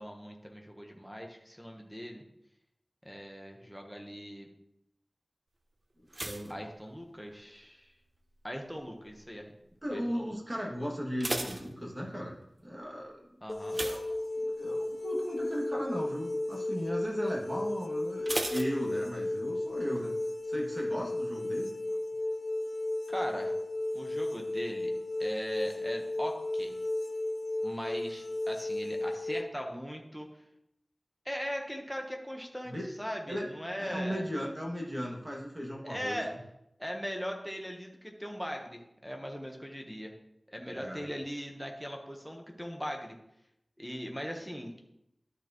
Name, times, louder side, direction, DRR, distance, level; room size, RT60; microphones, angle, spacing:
voice 1, 0.0-2.2 3.0-4.5 6.5-7.9 8.4-9.5 9.9-10.4 13.4-13.8 23.1-23.5 23.9-24.9 25.2-26.7 27.6-30.3 31.2-34.2 35.8-36.3 36.8-40.1 40.5-43.2 43.8-44.8, equal, ahead, 1 dB, 1.2 m, -39 dB
sound 1, 6.1-7.6 7.8-8.4 9.0-9.3 9.6-9.7 10.1-10.2 10.9-12.4 13.7-14.8 15.2-15.5 15.8-15.9 18.3-19.5 19.7-19.8, right 2 dB, 50° right, 0.7 m, -38 dB
voice 2, 6.2-6.6 9.8-12.3 12.6-13.2 13.8-20.1 20.4-21.7 32.7-32.9 33.3-33.4 33.8-36.2 40.7-41.0, equal, 25° right, -3 dB, 2.3 m, -36 dB
sound 2, 13.5-29.4, left 1 dB, 50° left, 0.6 m, -34 dB
12.0 x 4.8 x 3.1 m, 0.81 s
wide cardioid pair, 50°, 0 cm